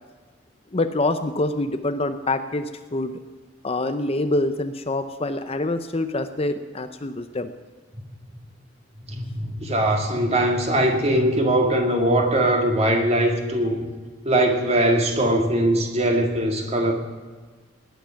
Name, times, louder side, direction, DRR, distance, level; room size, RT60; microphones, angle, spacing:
voice 1, 0.7-3.1 3.6-7.5, left 2 dB, 30° left, 9 dB, 0.7 m, -25 dB
voice 2, 9.1-13.9 14.2-16.9, right 1 dB, 35° right, 2 dB, 2.2 m, -21 dB
18.5 x 10.0 x 5.9 m, 1.4 s
head